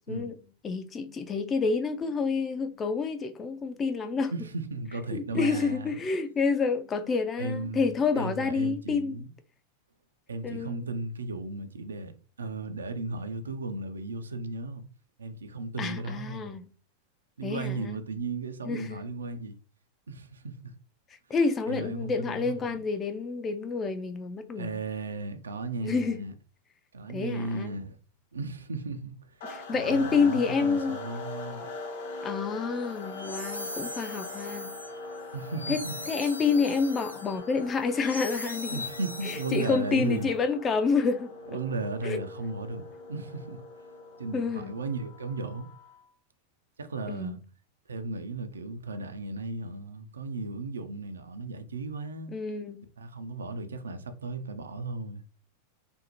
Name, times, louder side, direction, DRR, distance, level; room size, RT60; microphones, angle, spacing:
voice 1, 0.6-4.3 5.1-9.2 10.4-10.8 15.8-16.7 17.4-18.0 18.6-19.0 21.3-24.8 25.8-26.3 27.1-27.7 29.4-31.0 32.2-34.8 35.7-38.8 39.2-41.6 42.0-42.2 44.3-44.7 47.1-47.4 52.3-52.8, left 4 dB, 20° left, 0.3 m, -28 dB
voice 2, 4.3-6.0 7.4-9.3 10.3-12.1 12.4-14.8 15.2-16.6 17.4-19.6 20.1-20.8 21.7-22.8 24.6-26.3 26.9-28.0 28.3-31.7 35.3-35.9 38.7-40.3 41.5-43.6 44.2-45.7 46.8-47.4 47.9-52.3 53.0-55.2, right 3 dB, 70° right, 0.3 m, -35 dB
sound 1, 29.4-46.1, left 3 dB, 55° left, 0.8 m, -42 dB
sound 2, 32.9-40.1, left 1 dB, 90° left, 0.4 m, -40 dB
2.6 x 2.0 x 2.9 m
figure-of-eight pair, 90°, 0 cm